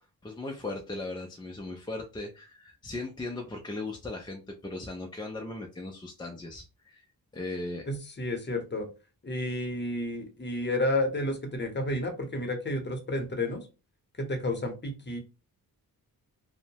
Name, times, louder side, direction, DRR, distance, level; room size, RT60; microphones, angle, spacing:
voice 1, 0.2-7.1 7.3-7.9, left 2 dB, 15° left, 1 dB, 0.3 m, -38 dB
voice 2, 7.8-8.9 9.2-13.7 14.2-15.2, left 1 dB, 30° left, 4 dB, 0.7 m, -31 dB
2.6 x 2.0 x 2.8 m, 0.30 s
wide cardioid pair, 105°, 37 cm